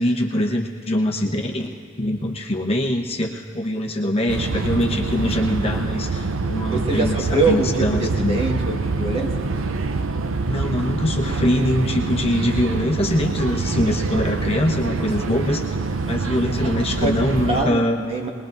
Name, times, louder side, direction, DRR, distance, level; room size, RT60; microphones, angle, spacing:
voice 1, 0.0-1.7 2.0-8.4 10.5-15.7 16.1-18.0, left 1 dB, 30° left, 0 dB, 1.0 m, -23 dB
sound 1, 4.3-17.6, right 3 dB, 75° right, 0.6 m, -25 dB
voice 2, 6.7-9.3 15.0-15.1 17.0-17.2 17.4-18.3, right 2 dB, 30° right, 0 dB, 1.7 m, -23 dB
23.5 x 20.5 x 2.7 m, 2.7 s
head